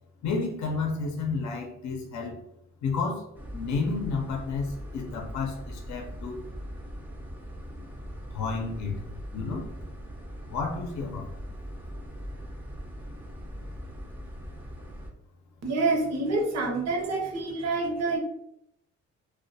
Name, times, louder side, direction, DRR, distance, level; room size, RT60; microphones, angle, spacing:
voice 1, 0.2-2.4 2.8-3.2 3.5-6.4 8.3-9.0 9.3-9.7 10.5-11.3, left 4 dB, 65° left, 1 dB, 0.5 m, -31 dB
sound 1, 3.3-15.1, equal, 5° right, 0.4 m, -41 dB
voice 2, 15.6-18.2, right 3 dB, 60° right, 2 dB, 0.7 m, -27 dB
2.2 x 2.1 x 2.6 m, 0.79 s
cardioid pair, 90°, 30 cm